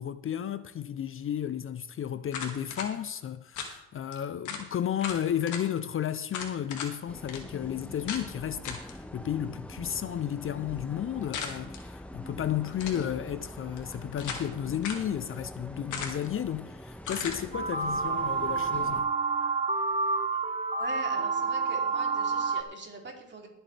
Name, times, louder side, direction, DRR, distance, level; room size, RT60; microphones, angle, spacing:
voice 1, 0.0-19.1, left 10 dB, 45° left, 0.5 m, -33 dB
sound 1, 2.3-2.9 3.6-3.7 4.1-4.2 4.5-4.7 5.0-5.6 6.3-6.9 7.3-7.4 8.1-8.3 8.6-8.9 11.3-11.8 12.7-13.1 13.8-14.5 14.8-15.1 15.9-16.3 17.0-17.4, left 6 dB, 75° left, 2.0 m, -37 dB
sound 2, 7.1-19.0, left 1 dB, 5° left, 1.4 m, -44 dB
sound 3, 17.5-22.6, right 4 dB, 20° right, 1.3 m, -29 dB
voice 2, 20.7-23.5, right 3 dB, 35° right, 3.0 m, -42 dB
21.5 x 7.9 x 3.3 m
cardioid pair, 90°, 30 cm